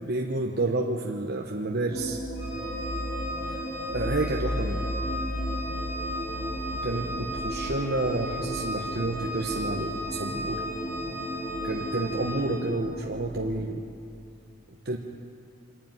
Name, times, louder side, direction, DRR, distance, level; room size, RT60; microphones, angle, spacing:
voice 1, 0.1-2.2 3.5-3.6 3.9-4.8 6.7-10.6 11.6-13.8 14.8-15.0, right 2 dB, 50° right, 0 dB, 1.1 m, -30 dB
sound 1, 1.9-13.6, equal, 20° left, 4.3 m, -34 dB
Organ, 2.4-12.8, left 1 dB, 50° left, 7.3 m, -37 dB
25.0 x 12.0 x 9.5 m, 2.5 s
head